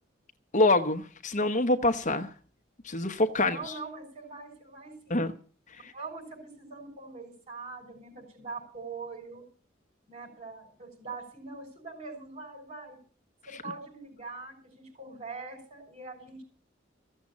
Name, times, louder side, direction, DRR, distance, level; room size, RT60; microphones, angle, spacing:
voice 1, 0.5-2.3 2.8-3.7 5.1-5.3 5.8-5.9, left 2 dB, 40° left, 1.0 m, -25 dB
voice 2, 3.4-5.2 5.9-9.4 10.1-13.0 13.5-16.4, right 4 dB, 40° right, 6.1 m, -43 dB
15.5 x 7.3 x 8.7 m
head